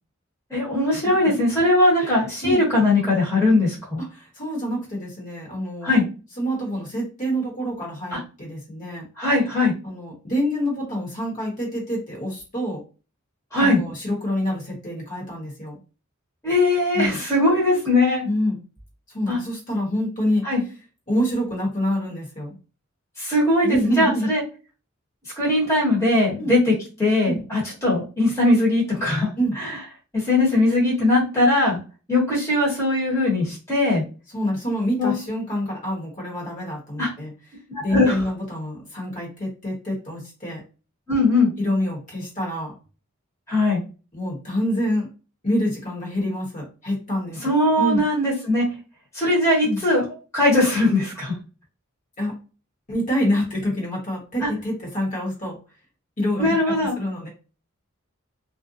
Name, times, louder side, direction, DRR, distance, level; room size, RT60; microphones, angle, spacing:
voice 1, 0.5-4.0 5.8-6.0 8.1-8.2 9.2-9.7 13.5-13.8 16.4-18.2 19.3-19.4 20.4-20.6 23.2-24.4 25.4-26.7 27.0-29.7 30.1-31.8 32.1-34.0 35.0-35.1 37.0-37.1 37.9-38.2 41.1-41.5 43.5-43.8 47.4-48.7 49.1-50.0 50.3-51.4 54.4-54.5 56.4-56.9, left 2 dB, 15° left, -5 dB, 1.1 m, -20 dB
voice 2, 2.0-2.6 4.0-6.1 6.4-9.0 9.8-12.8 13.6-15.8 16.9-17.2 18.2-18.6 19.1-20.4 21.1-22.6 23.6-24.3 26.4-26.5 27.2-27.4 29.4-29.6 34.3-37.3 37.8-40.6 41.6-42.7 44.1-45.1 45.4-48.0 49.6-49.8 52.2-52.3 52.9-55.6 56.2-57.3, equal, 40° left, -2 dB, 1.2 m, -26 dB
2.5 x 2.1 x 2.6 m, 0.33 s
head